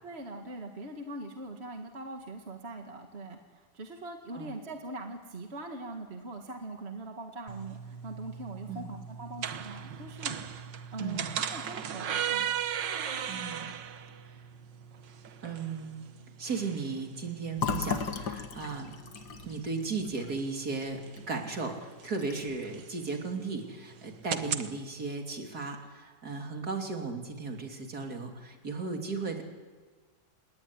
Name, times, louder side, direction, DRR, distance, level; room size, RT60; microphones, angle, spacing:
voice 1, 0.0-10.6 10.9-12.5, right 2 dB, 35° right, 3 dB, 2.1 m, -42 dB
sound 1, 7.5-24.7, right 8 dB, 75° right, 1.8 m, -38 dB
voice 2, 13.3-13.7 15.4-16.0 16.4-18.9 19.4-21.0 21.3-29.4, right 4 dB, 55° right, 2 dB, 3.5 m, -36 dB
Fill (with liquid), 17.6-21.2 21.6-21.7 22.0-22.6, left 6 dB, 65° left, 2.1 m, -36 dB
29.5 x 18.0 x 10.0 m, 1.4 s
omnidirectional pair, 2.0 m